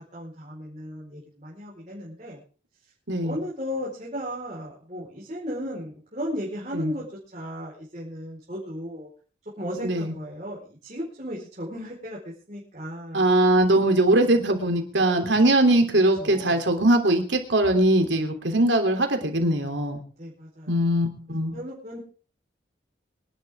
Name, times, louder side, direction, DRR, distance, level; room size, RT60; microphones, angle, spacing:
voice 1, 0.1-2.4 3.2-7.0 7.3-9.1 9.6-13.2 16.2-16.6 20.2-20.7 21.5-22.0, equal, 40° right, -5 dB, 4.8 m, -35 dB
voice 2, 9.8-10.1 13.1-20.0 20.7-21.6, right 1 dB, 85° right, 5 dB, 3.3 m, -21 dB
25.0 x 11.5 x 3.7 m, 0.39 s
head